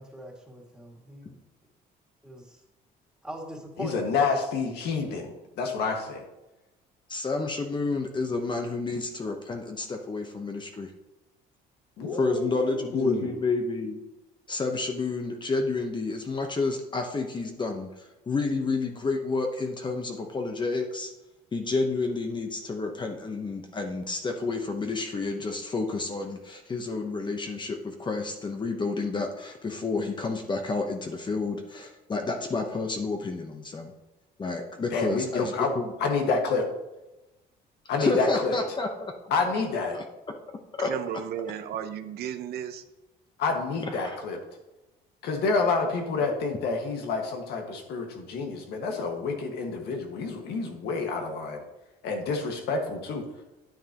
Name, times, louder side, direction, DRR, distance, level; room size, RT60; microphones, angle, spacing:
voice 1, 0.0-1.3 2.2-2.6 3.2-4.1 12.0-12.4, right 1 dB, 5° right, -1 dB, 2.2 m, -41 dB
voice 2, 3.8-6.2 12.0-13.3 34.9-35.7 36.0-36.7 37.9-38.6 39.3-40.0 43.4-44.4 45.2-51.6 52.0-53.3, left 4 dB, 75° left, 3 dB, 1.7 m, -28 dB
voice 3, 7.1-10.9 12.2-14.0 14.5-21.1 21.5-33.9 34.4-35.9 38.0-39.1 39.9-40.0 40.8-40.9 44.0-44.2, left 3 dB, 25° left, 4 dB, 1.0 m, -30 dB
voice 4, 40.8-42.8, right 9 dB, 70° right, 9 dB, 0.8 m, -34 dB
9.2 x 9.2 x 3.0 m, 1.0 s
cardioid pair, 110°, 17 cm